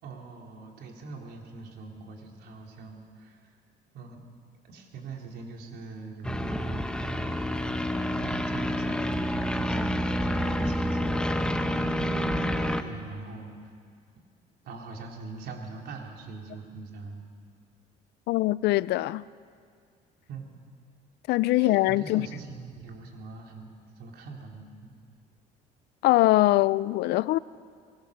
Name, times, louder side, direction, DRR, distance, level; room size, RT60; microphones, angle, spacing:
voice 1, 0.0-3.6 3.9-4.2 4.6-7.3 8.2-13.7 14.6-17.3 20.3-20.5 21.5-24.9, right 3 dB, 70° right, 3.6 m, -42 dB
sound 1, 6.2-12.8, equal, 5° left, 1.1 m, -28 dB
voice 2, 18.3-19.2 21.3-22.3 26.0-27.4, left 17 dB, 80° left, 0.5 m, -22 dB
23.0 x 22.5 x 6.7 m
cardioid pair, 110°, 17 cm